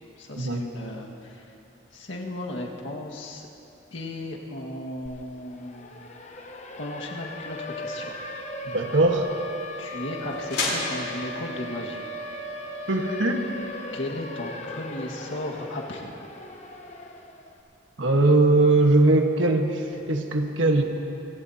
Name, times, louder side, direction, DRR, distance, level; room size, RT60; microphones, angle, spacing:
voice 1, 0.2-1.4 1.9-3.5 3.9-6.0 6.8-8.2 9.8-12.0 13.9-16.1, left 1 dB, 85° left, -1 dB, 1.8 m, -35 dB
Siren, 5.1-5.2 5.5-17.5, left 1 dB, 35° left, 1.0 m, -37 dB
sound 1, 7.8-13.7, left 3 dB, 70° left, 3.9 m, -36 dB
voice 2, 8.6-9.3 12.9-13.5 18.0-20.8, right 2 dB, 85° right, 3 dB, 1.4 m, -20 dB
25.5 x 16.5 x 2.9 m, 2.9 s
head